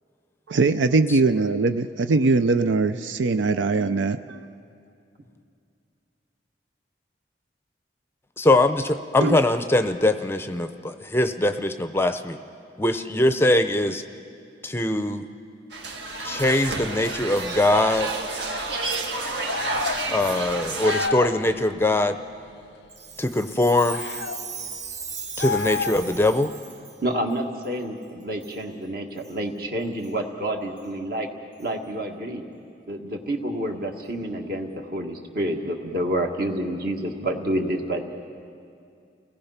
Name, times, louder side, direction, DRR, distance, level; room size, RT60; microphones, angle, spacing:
voice 1, 0.5-4.4 9.2-9.4, right 3 dB, 90° right, 10 dB, 0.5 m, -21 dB
voice 2, 8.4-12.4 12.8-14.0 14.6-15.3 16.2-18.1 20.1-22.2 23.2-24.1 25.4-26.5, left 2 dB, 15° left, 10 dB, 0.5 m, -22 dB
sound 1, 15.7-21.1, right 3 dB, 70° right, 1.8 m, -30 dB
sound 2, 19.5-20.0 20.8-21.4 23.9-24.4 25.4-26.2, left 5 dB, 60° left, 0.5 m, -29 dB
Chime, 22.9-27.0 27.6-27.7 28.4-28.6 29.2-29.3 30.0-30.1 30.8-30.9 31.6-31.7, right 6 dB, 40° right, 1.1 m, -38 dB
voice 3, 27.0-31.3 31.6-32.4 32.9-38.0, right 1 dB, 55° right, 3 dB, 1.8 m, -28 dB
29.5 x 18.5 x 5.8 m, 2.5 s
head